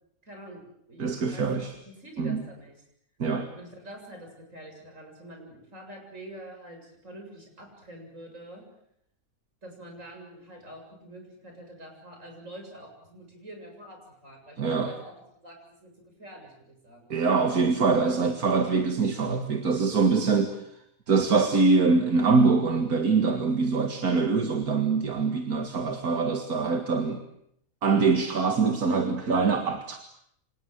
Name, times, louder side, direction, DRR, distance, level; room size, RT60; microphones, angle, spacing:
voice 1, 0.2-0.6 0.9-2.7 3.5-8.6 9.6-15.1 15.4-17.1, right 1 dB, 55° right, 3 dB, 7.9 m, -46 dB
voice 2, 1.0-1.7 2.2-2.4 3.2-3.5 14.6-14.9 17.1-20.6 21.1-27.2 27.8-30.0, right 4 dB, 80° right, 6 dB, 2.4 m, -24 dB
28.5 x 26.0 x 8.0 m, 0.73 s
omnidirectional pair, 1.6 m